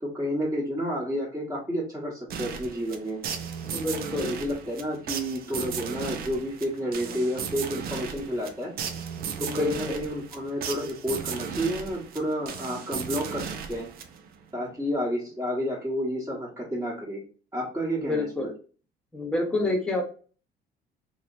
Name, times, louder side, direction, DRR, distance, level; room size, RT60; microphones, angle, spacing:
voice 1, 0.0-3.2 4.2-8.7 9.4-13.9 14.5-17.3 17.5-18.5, equal, 15° right, -6 dB, 1.2 m, -30 dB
sound 1, 2.3-14.4, right 7 dB, 65° right, 0.6 m, -36 dB
voice 2, 3.6-4.4 9.4-10.0 18.0-18.5 19.1-20.0, left 2 dB, 5° left, 0 dB, 1.1 m, -28 dB
2.9 x 2.9 x 2.6 m, 0.39 s
cardioid pair, 110°, 17 cm